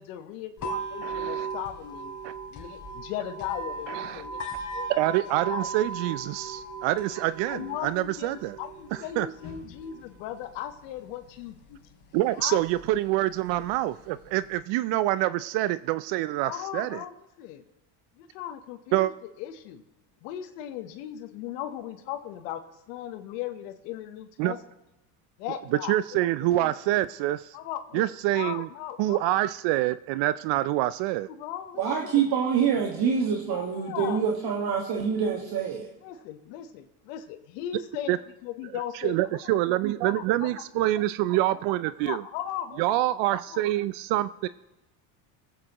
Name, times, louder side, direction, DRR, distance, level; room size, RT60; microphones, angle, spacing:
voice 1, 0.0-2.1 2.5-4.4 4.7-4.9 5.5-5.7 7.5-11.8 12.4-12.6 16.4-17.6 18.2-19.1 19.4-19.8 20.2-22.6 22.9-24.6 25.4-26.0 26.4-26.7 27.5-28.0 28.3-29.3 31.4-32.2 33.4-34.2 36.0-39.4 40.1-40.6 41.5-41.6 42.0-42.8 43.5-43.6, left 11 dB, 85° left, 7 dB, 1.1 m, -37 dB
sound 1, 0.6-14.6, right 3 dB, 40° left, 3.3 m, -39 dB
voice 2, 1.0-1.5 2.2-2.3 3.9-4.3 4.9-8.6 8.9-9.3 12.1-17.0 18.9-19.1 24.4-24.6 25.9-27.6 27.9-28.7 29.0-31.3 38.1-38.2 38.9-42.2 42.8-44.5, right 15 dB, 65° right, 15 dB, 0.5 m, -26 dB
voice 3, 31.8-35.9, right 7 dB, 50° right, 0 dB, 1.7 m, -26 dB
23.0 x 8.6 x 3.0 m, 1.0 s
supercardioid pair, 100°, 47 cm